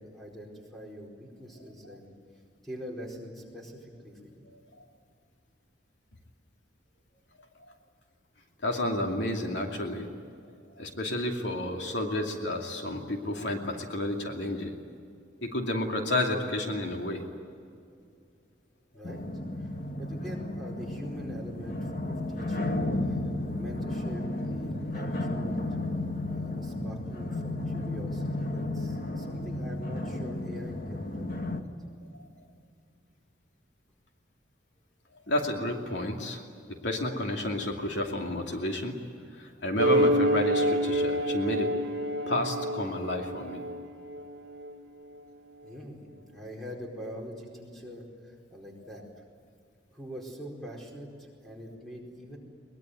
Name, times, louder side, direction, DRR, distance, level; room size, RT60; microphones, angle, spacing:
voice 1, 0.0-2.1 2.6-4.5 18.9-19.2 19.6-19.7 20.0-22.8 23.1-23.2 23.5-25.6 26.3-31.3 31.5-31.6 45.6-49.2 49.9-52.4, equal, ahead, -2 dB, 4.7 m, -44 dB
voice 2, 8.6-10.1 10.8-14.7 15.4-17.2 35.3-36.4 36.8-38.9 39.3-41.7 42.3-43.6, left 1 dB, 75° left, 2 dB, 2.7 m, -31 dB
sound 1, 19.0-31.6, left 1 dB, 45° left, 1.7 m, -33 dB
sound 2, 39.8-44.7, right 1 dB, 60° right, 1.5 m, -27 dB
22.5 x 21.5 x 9.4 m, 2.4 s
head